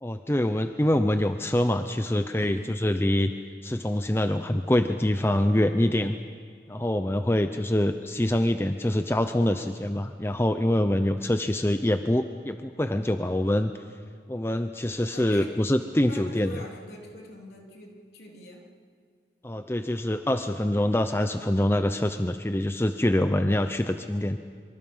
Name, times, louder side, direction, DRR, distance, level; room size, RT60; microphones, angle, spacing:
voice 1, 0.0-3.3 3.6-6.1 6.7-13.7 14.3-16.6 19.4-24.4, left 1 dB, 15° left, 8 dB, 0.6 m, -25 dB
voice 2, 2.3-2.7 15.1-15.5 16.1-18.7, left 1 dB, 65° left, -1 dB, 3.4 m, -44 dB
25.0 x 24.5 x 5.6 m, 2.1 s
head